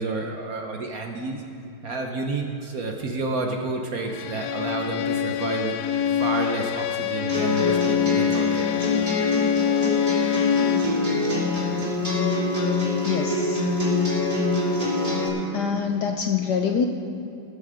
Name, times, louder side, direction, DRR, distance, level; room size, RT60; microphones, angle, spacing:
voice 1, 0.0-1.4 1.8-5.8 6.2-8.7, right 3 dB, 50° right, 2 dB, 1.2 m, -30 dB
Bowed string instrument, 4.1-11.0, left 9 dB, 90° left, 0.8 m, -25 dB
sound 1, 7.3-15.3, left 2 dB, 15° right, 2.7 m, -24 dB
voice 2, 13.0-13.8 15.5-16.9, left 7 dB, 70° left, 4 dB, 1.0 m, -25 dB
20.0 x 8.6 x 5.0 m, 2.8 s
omnidirectional pair, 2.3 m